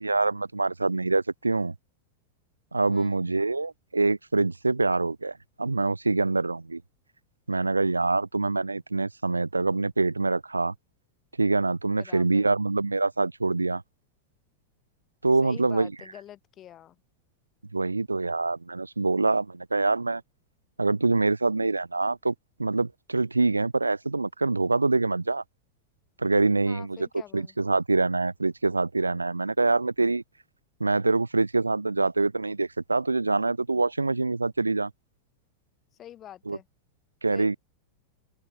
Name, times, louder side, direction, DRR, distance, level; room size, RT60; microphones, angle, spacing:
voice 1, 0.0-1.7 2.7-6.8 7.5-10.7 11.4-13.8 15.2-15.9 17.7-20.2 20.8-22.3 22.6-25.4 26.2-27.1 27.3-30.2 30.8-34.9 36.5-36.6 37.2-37.6, right 3 dB, 80° right, 0.4 m, -25 dB
voice 2, 2.9-3.2 11.9-12.6 15.4-17.0 26.6-27.5 35.9-36.7 37.3-37.5, left 11 dB, 30° left, 4.5 m, -46 dB
open air
figure-of-eight pair, 90°, 0 cm